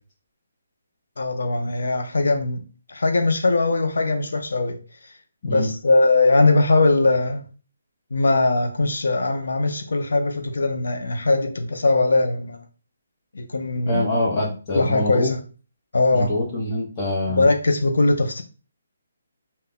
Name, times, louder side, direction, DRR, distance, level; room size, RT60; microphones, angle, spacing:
voice 1, 1.2-2.6 2.9-4.8 5.4-7.4 8.1-12.6 13.3-14.0 14.7-15.4 15.9-16.4 17.3-18.4, left 2 dB, 80° left, 0.4 m, -20 dB
voice 2, 13.9-15.3 16.1-17.5, left 1 dB, 20° left, 0.6 m, -24 dB
2.1 x 2.0 x 3.5 m
hypercardioid pair, 175°, 0 cm